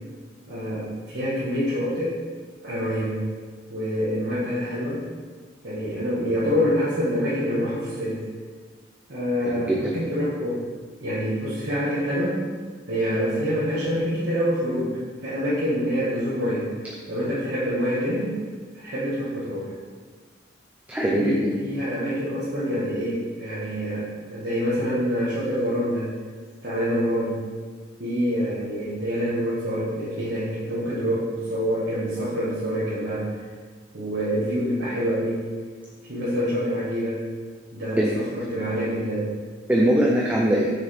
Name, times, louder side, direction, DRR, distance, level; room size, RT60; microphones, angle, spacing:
voice 1, 0.5-2.2 2.6-3.2 3.7-5.0 5.6-8.2 9.1-10.6 11.0-12.4 12.9-16.7 17.1-18.3 18.7-19.7 21.0-26.1 26.6-27.4 28.0-33.4 33.9-35.4 36.1-37.2 37.7-39.3, equal, 70° right, -10 dB, 1.6 m, -26 dB
voice 2, 9.4-9.9 20.9-21.6 38.0-38.1 39.7-40.7, right 1 dB, 10° right, -3 dB, 0.5 m, -21 dB
6.7 x 6.4 x 3.4 m, 1.5 s
head